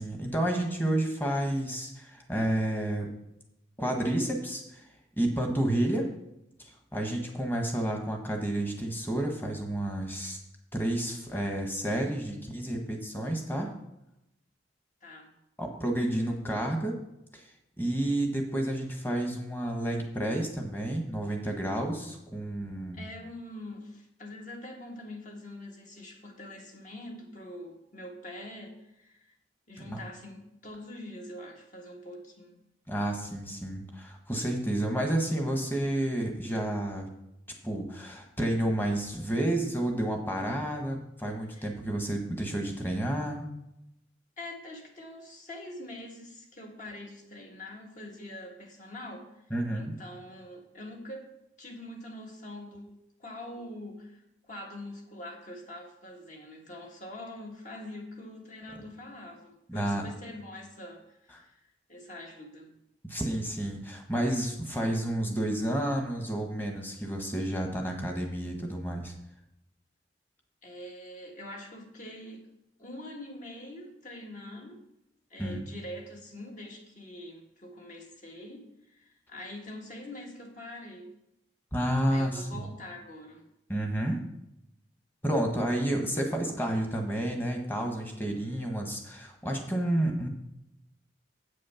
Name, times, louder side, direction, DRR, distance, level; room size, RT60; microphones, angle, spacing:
voice 1, 0.0-3.1 3.8-4.9 5.2-6.1 6.6-10.4 10.7-13.7 15.6-17.0 17.3-17.5 17.8-23.0 29.9-30.0 32.9-37.1 37.6-43.5 49.5-49.9 59.7-60.1 63.0-69.1 75.4-75.6 81.7-82.4 83.7-84.2 85.2-90.3, right 1 dB, 10° left, 2 dB, 1.3 m, -30 dB
voice 2, 15.0-15.3 22.9-29.3 29.7-32.6 41.5-41.7 44.4-49.4 49.7-51.3 51.6-52.9 53.2-61.6 61.9-62.7 70.6-72.5 72.8-74.8 75.3-81.1 82.1-83.5, left 1 dB, 45° left, 1 dB, 1.7 m, -44 dB
8.5 x 6.4 x 5.7 m, 0.84 s
head